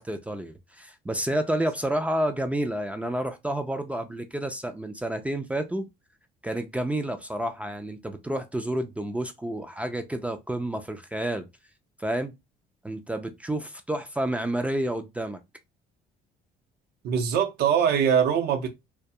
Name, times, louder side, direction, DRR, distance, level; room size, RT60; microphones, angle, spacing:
voice 1, 0.0-5.9 6.4-11.5 12.0-12.3 12.8-15.4, right 1 dB, 10° right, 0.3 m, -30 dB
voice 2, 17.0-18.7, right 8 dB, 70° right, 0.7 m, -22 dB
2.3 x 2.2 x 2.7 m
cardioid pair, 110°, 17 cm